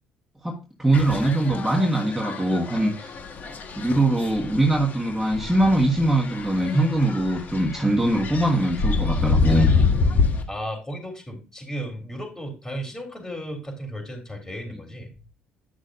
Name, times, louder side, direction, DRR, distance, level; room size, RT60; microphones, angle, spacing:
voice 1, 0.4-3.1 3.8-9.7, right 1 dB, 5° right, -2 dB, 1.4 m, -22 dB
sound 1, 0.9-10.4, left 4 dB, 50° left, 1.4 m, -27 dB
voice 2, 10.5-15.1, equal, 15° left, 2 dB, 3.6 m, -34 dB
9.9 x 6.3 x 2.6 m, 0.30 s
cardioid pair, 95°, 4 cm